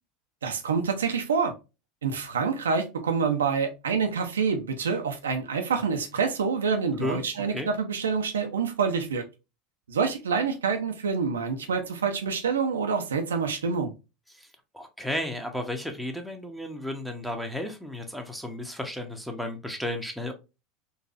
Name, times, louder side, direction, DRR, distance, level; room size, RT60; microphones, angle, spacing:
voice 1, 0.4-1.5 2.0-9.2 9.9-13.9, right 5 dB, 75° right, 0.5 m, -27 dB
voice 2, 14.7-20.3, left 1 dB, ahead, 0.8 m, -33 dB
3.9 x 2.5 x 2.4 m
figure-of-eight pair, 75°, 0 cm